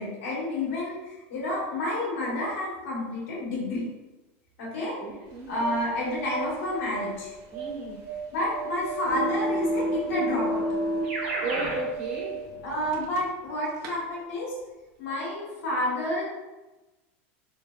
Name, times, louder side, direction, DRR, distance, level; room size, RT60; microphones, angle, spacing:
voice 1, 0.0-3.8 4.6-5.0 5.5-7.3 8.3-10.6 12.6-14.5 15.0-16.2, left 1 dB, 90° left, -5 dB, 1.1 m, -30 dB
voice 2, 5.0-5.7 7.5-8.0 11.4-12.4, right 2 dB, 65° right, -7 dB, 1.4 m, -34 dB
sound 1, 5.3-13.5 13.8-13.9, right 6 dB, 50° right, 0.5 m, -37 dB
Keyboard (musical), 9.1-11.8, equal, 90° right, 1.3 m, -29 dB
3.3 x 2.0 x 2.2 m, 1.1 s
supercardioid pair, 130°, 7 cm